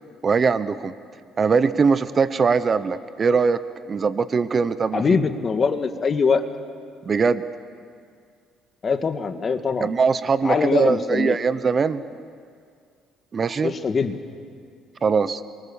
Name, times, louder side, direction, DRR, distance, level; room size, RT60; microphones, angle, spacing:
voice 1, 0.2-0.9 1.4-3.6 3.9-5.0 7.1-7.4 9.8-12.0 13.3-13.7 15.0-15.4, right 5 dB, 35° right, 13 dB, 0.9 m, -21 dB
voice 2, 4.9-6.5 8.8-9.9 10.4-11.4 13.6-14.2, left 5 dB, 40° left, 8 dB, 1.8 m, -22 dB
28.0 x 23.5 x 7.2 m, 2.2 s
cardioid pair, 95°, 0 cm